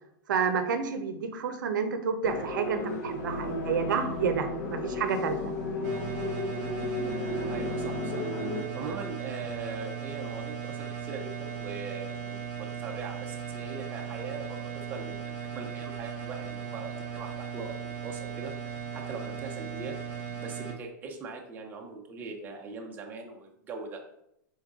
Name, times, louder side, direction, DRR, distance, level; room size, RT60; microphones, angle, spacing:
voice 1, 0.3-5.5, right 6 dB, 85° right, 8 dB, 0.6 m, -29 dB
sound 1, 2.2-8.6, left 2 dB, 60° left, 0.9 m, -33 dB
sound 2, 5.8-20.7, right 7 dB, 40° right, 1.0 m, -37 dB
voice 2, 7.5-8.3 8.7-20.0 20.4-24.1, right 4 dB, 15° right, 1 dB, 0.5 m, -41 dB
3.9 x 3.8 x 3.6 m, 0.80 s
supercardioid pair, 150°, 10 cm